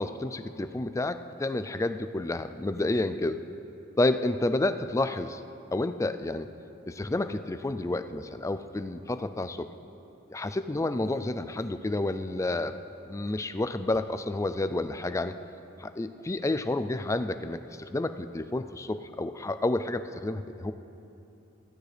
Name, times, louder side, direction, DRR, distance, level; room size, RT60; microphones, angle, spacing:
voice 1, 0.0-3.4 4.0-5.4 5.7-6.5 6.9-9.7 10.3-12.8 13.1-15.4 15.8-20.7, left 2 dB, 15° left, 10 dB, 0.3 m, -30 dB
15.5 x 14.5 x 3.4 m, 2.9 s
head